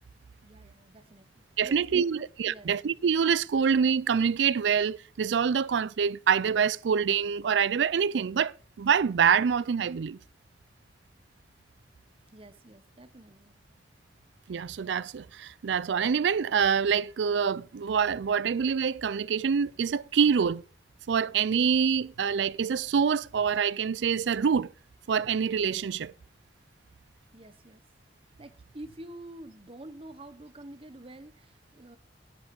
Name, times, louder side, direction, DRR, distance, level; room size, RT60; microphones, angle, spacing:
voice 1, 0.4-1.2 1.6-2.7 12.3-13.6 27.3-27.8 28.4-32.0, right 1 dB, 30° right, 1.0 m, -48 dB
voice 2, 1.6-10.2 14.5-20.6 21.1-24.7 25.1-26.1, right 6 dB, 75° right, 0.4 m, -26 dB
11.0 x 8.1 x 5.4 m
head